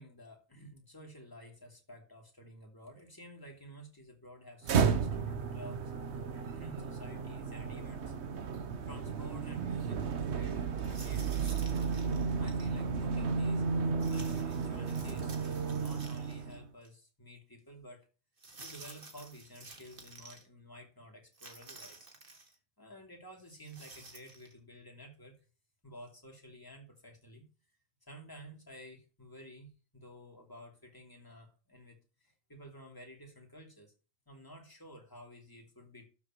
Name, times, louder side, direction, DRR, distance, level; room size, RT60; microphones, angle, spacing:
voice 1, 0.0-6.2 6.5-8.1 8.8-11.4 12.3-13.7 14.1-18.1 18.6-22.0 22.3-22.4 22.8-25.4 25.8-27.5 28.1-33.9 34.3-36.1, right 1 dB, 20° left, 2.8 m, -52 dB
sound 1, 4.6-16.6, right 5 dB, 75° right, 1.2 m, -33 dB
sound 2, 10.8-12.7 14.0-16.5 16.8-16.9 18.4-20.4 21.3-22.5 23.5-24.5, right 3 dB, 50° right, 2.0 m, -52 dB
12.5 x 7.0 x 3.0 m
omnidirectional pair, 1.1 m